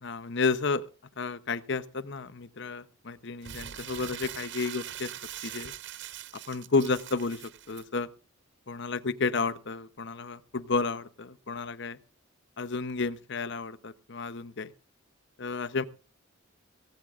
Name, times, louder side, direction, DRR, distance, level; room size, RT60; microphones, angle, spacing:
voice 1, 0.0-0.8 1.2-5.1 5.4-5.7 6.5-8.1 8.7-12.0 12.6-14.7 15.4-15.8, left 4 dB, 60° left, 14 dB, 0.8 m, -31 dB
Crumpling crinkling, 3.4-7.8, right 11 dB, 55° right, 0.6 m, -42 dB
17.5 x 16.5 x 2.5 m, 0.35 s
head